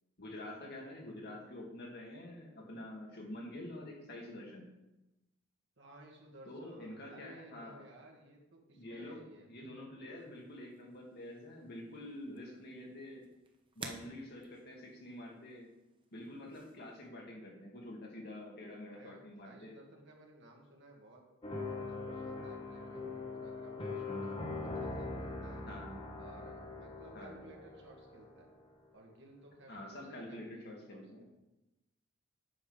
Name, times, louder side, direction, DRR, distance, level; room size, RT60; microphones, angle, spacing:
voice 1, 0.2-4.7 6.5-7.8 8.7-9.2 9.5-13.2 13.8-15.7 16.1-19.7 25.7-26.1 27.1-27.5 29.7-31.2, left 1 dB, 55° left, -1 dB, 2.1 m, -47 dB
voice 2, 5.8-9.6 18.9-21.2 21.6-24.3 24.6-25.6 26.2-28.5 28.9-30.6 30.9-31.3, right 2 dB, 60° right, 0 dB, 1.9 m, -57 dB
sound 1, 10.1-17.1, right 3 dB, 25° right, 0.9 m, -55 dB
sound 2, 21.4-28.5, left 3 dB, 25° left, 1.1 m, -42 dB
8.5 x 6.6 x 4.9 m, 0.97 s
head